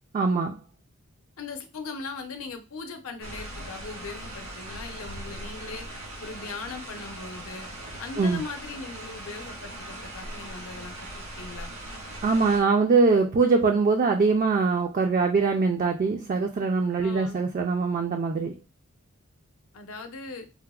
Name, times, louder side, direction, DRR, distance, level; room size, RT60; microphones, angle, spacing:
voice 1, 0.1-0.6 8.2-8.4 12.2-18.6, right 4 dB, 40° right, 4 dB, 0.3 m, -23 dB
voice 2, 1.4-5.8 6.2-7.7 8.0-11.0 11.4-11.7 17.0-17.4 19.7-20.4, left 4 dB, 75° left, 6 dB, 0.6 m, -39 dB
sound 1, 3.2-12.6, right 1 dB, 85° right, 1.6 m, -40 dB
4.6 x 2.0 x 2.3 m, 0.29 s
head